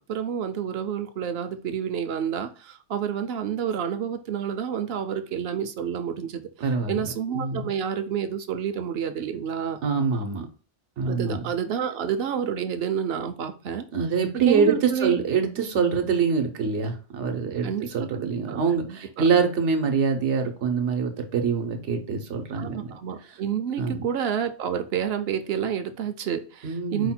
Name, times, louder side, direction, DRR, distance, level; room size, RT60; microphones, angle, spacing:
voice 1, 0.1-6.5 6.9-9.8 11.1-13.9 14.5-15.1 17.6-19.3 22.5-27.1, right 8 dB, 65° right, 9 dB, 0.8 m, -29 dB
voice 2, 6.6-7.7 9.8-10.5 11.0-11.4 13.9-22.9 23.3-23.4 23.8-24.0 26.6-27.1, right 5 dB, 85° right, 5 dB, 1.1 m, -25 dB
4.8 x 2.2 x 4.2 m, 0.37 s
omnidirectional pair, 1.2 m